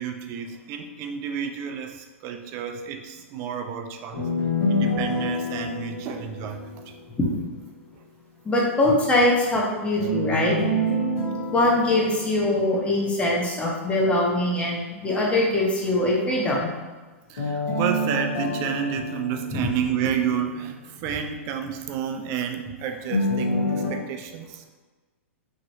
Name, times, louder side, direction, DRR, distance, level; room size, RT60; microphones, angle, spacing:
voice 1, 0.0-4.3 4.7-6.8 17.3-24.6, right 8 dB, 40° right, 5 dB, 0.4 m, -30 dB
sound 1, 4.1-7.2 10.0-13.2 17.4-20.4 23.1-23.9, left 1 dB, 70° left, 1.3 m, -27 dB
voice 2, 8.4-10.6 11.5-16.7 19.5-19.7, left 1 dB, 15° left, -3 dB, 0.8 m, -22 dB
2.9 x 2.9 x 2.7 m, 1.3 s
hypercardioid pair, 110°, 7 cm